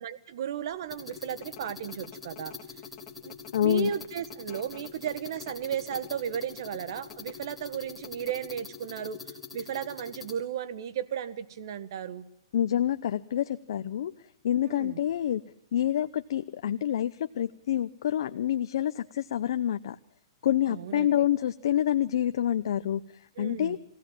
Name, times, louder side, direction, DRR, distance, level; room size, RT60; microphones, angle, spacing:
voice 1, 0.0-2.5 3.2-9.2 9.5-12.2 14.7-15.0 20.7-21.2 23.4-23.8, right 9 dB, 55° right, 13 dB, 1.4 m, -35 dB
sound 1, 0.8-6.2 6.9-7.3 7.7-7.8 8.0-8.5, left 11 dB, 30° left, 2.0 m, -51 dB
sound 2, 0.9-10.3, left 5 dB, 5° left, 3.6 m, -44 dB
voice 2, 3.5-3.9 12.5-14.1 14.4-15.4 15.7-20.0 20.4-23.0 23.4-23.8, left 11 dB, 65° left, 11 dB, 0.7 m, -27 dB
23.5 x 17.0 x 7.3 m, 0.80 s
hypercardioid pair, 150°, 3 cm